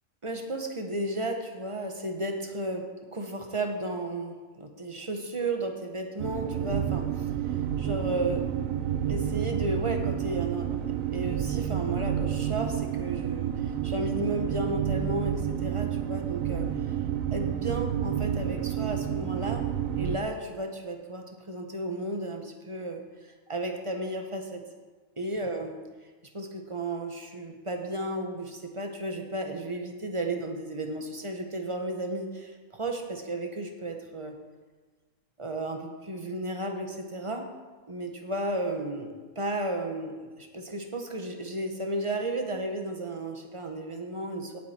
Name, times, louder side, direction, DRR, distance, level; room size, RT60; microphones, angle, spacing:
voice 1, 0.2-7.3 7.8-8.4 9.1-16.9 17.3-19.7 20.0-24.6 25.2-25.8 26.3-34.3 35.4-37.5 37.9-44.6, right 1 dB, 25° right, 4 dB, 1.3 m, -33 dB
sound 1, 6.2-20.2, right 10 dB, 85° right, 1.1 m, -30 dB
17.5 x 8.1 x 4.5 m, 1.3 s
omnidirectional pair, 1.4 m